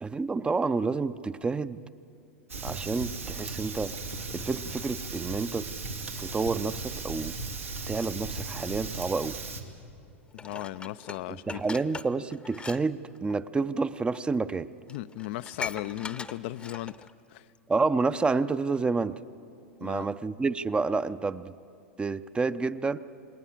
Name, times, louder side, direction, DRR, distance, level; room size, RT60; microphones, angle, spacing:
voice 1, 0.0-1.8 2.6-3.9 4.3-5.7 6.2-7.4 7.9-9.4 11.3-14.7 17.7-19.2 19.8-21.5 22.0-23.0, right 4 dB, 15° right, 14 dB, 0.6 m, -29 dB
Fire, 2.5-9.6, right 3 dB, 90° right, 2.3 m, -37 dB
voice 2, 10.3-11.6 14.9-17.5 19.8-20.1, left 15 dB, 55° left, 13 dB, 0.5 m, -37 dB
Dishes pots and pans, 10.4-12.8 13.1-13.3 14.1-14.2 14.6-14.7 14.9-17.1 17.6-17.7, left 4 dB, 15° left, 0.8 m, -40 dB
28.5 x 19.5 x 7.4 m, 2.6 s
hypercardioid pair, 95°, 7 cm